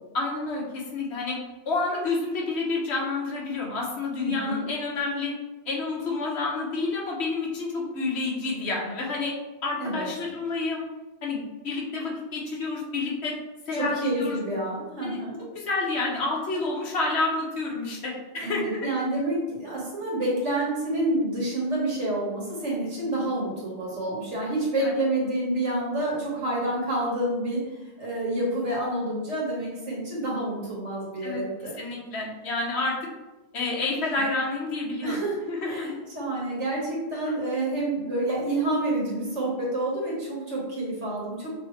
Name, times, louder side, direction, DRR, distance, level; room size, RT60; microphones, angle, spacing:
voice 1, 0.1-1.4 1.6-5.3 5.7-9.3 9.6-10.8 11.2-13.3 13.7-14.4 15.0-18.8 24.8-24.9 31.2-33.0 33.5-35.2 35.5-35.9 37.3-37.4, left 3 dB, 65° left, -2 dB, 1.2 m, -29 dB
voice 2, 4.2-4.6 9.8-10.1 13.7-15.4 18.4-27.6 28.0-31.7 35.0-35.4 35.6-41.5, right 1 dB, 75° right, -5 dB, 1.9 m, -28 dB
5.9 x 2.7 x 3.2 m, 1.1 s
omnidirectional pair, 1.2 m